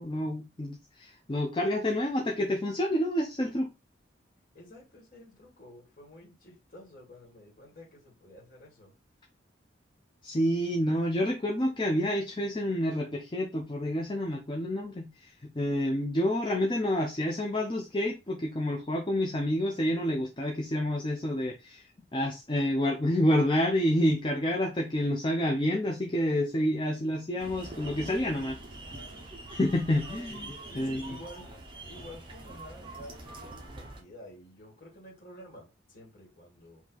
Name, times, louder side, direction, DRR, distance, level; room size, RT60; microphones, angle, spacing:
voice 1, 0.0-3.7 10.2-28.6 29.5-31.2, left 1 dB, 25° left, 0.6 m, -29 dB
voice 2, 4.5-8.9 30.7-31.5 31.8-36.8, left 1 dB, 50° left, 1.8 m, -50 dB
sound 1, 27.4-34.0, right 2 dB, 25° right, 1.1 m, -44 dB
4.8 x 2.8 x 3.9 m
head